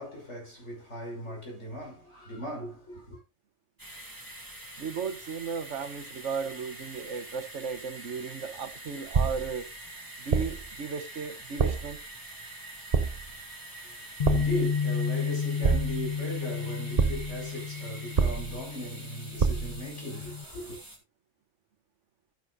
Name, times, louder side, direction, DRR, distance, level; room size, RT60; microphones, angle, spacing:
voice 1, 0.0-3.2 14.3-20.8, equal, 80° left, 6.5 m, -38 dB
sound 1, 3.8-21.0, right 1 dB, 15° right, 2.3 m, -45 dB
voice 2, 4.8-9.7 10.2-12.0, right 6 dB, 85° right, 1.4 m, -35 dB
sound 2, 9.1-9.6 10.3-10.7 11.6-12.0 12.9-13.4 14.2-14.7 15.6-16.2 17.0-17.4 18.2-18.7 19.4-19.8, right 5 dB, 40° right, 0.8 m, -27 dB
Bass guitar, 14.2-20.4, left 6 dB, 45° left, 0.7 m, -32 dB
12.0 x 9.5 x 2.6 m
omnidirectional pair, 1.2 m